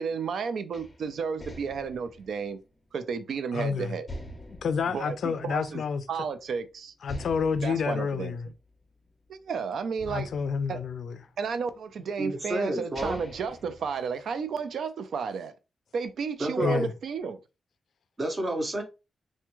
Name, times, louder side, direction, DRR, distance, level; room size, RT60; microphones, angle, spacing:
voice 1, 0.0-2.6 2.9-4.1 4.9-5.8 6.1-6.9 7.6-8.4 9.3-10.3 10.7-10.8 11.4-15.5 15.9-17.4, right 6 dB, 75° right, 0.4 m, -32 dB
sound 1, 0.7-3.5 4.1-6.0 6.4-6.5 7.0-9.4 10.0-11.6 12.3-12.4 12.8-14.6, equal, 20° left, 0.6 m, -45 dB
voice 2, 3.5-3.9 4.5-6.0 7.0-8.5 10.1-11.2 16.6-16.9, left 6 dB, 65° left, 0.3 m, -29 dB
voice 3, 12.2-13.2 16.4-16.9 18.2-18.8, right 1 dB, 25° right, 0.6 m, -30 dB
3.4 x 2.1 x 3.0 m
wide cardioid pair, 180°, 0 cm